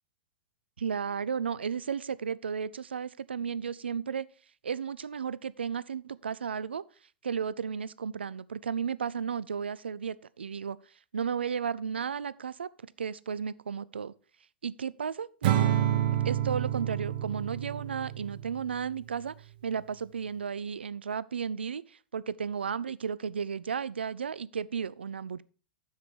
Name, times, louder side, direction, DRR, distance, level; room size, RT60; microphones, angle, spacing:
voice 1, 0.8-4.3 4.6-6.8 7.2-10.8 11.1-12.7 13.0-14.1 14.6-15.7 16.2-25.4, right 7 dB, 80° right, 0.4 m, -34 dB
Acoustic guitar / Strum, 15.4-18.8, right 11 dB, 60° right, 1.0 m, -28 dB
7.4 x 7.1 x 4.4 m
hypercardioid pair, 100°, 6 cm